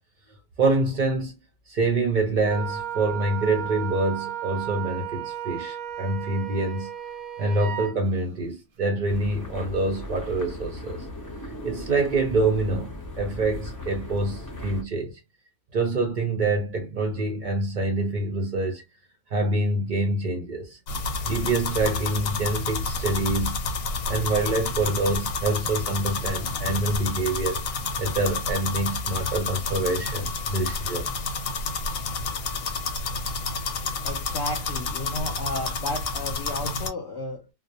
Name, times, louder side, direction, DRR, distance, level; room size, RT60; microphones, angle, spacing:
voice 1, 0.6-1.3 1.7-6.9 7.4-11.1 11.6-15.2 15.7-18.8 19.3-20.8 21.3-23.6 24.1-27.6 28.0-31.3, right 2 dB, 65° right, 0.4 m, -26 dB
Wind instrument woodwind instrument, 2.4-7.9, right 10 dB, 90° right, 1.0 m, -34 dB
sound 1, 9.1-14.8, left 1 dB, 20° left, 0.5 m, -38 dB
sound 2, 20.9-36.9, left 4 dB, 90° left, 1.0 m, -29 dB
voice 2, 34.0-37.5, left 2 dB, 65° left, 0.7 m, -33 dB
2.3 x 2.0 x 2.6 m
omnidirectional pair, 1.4 m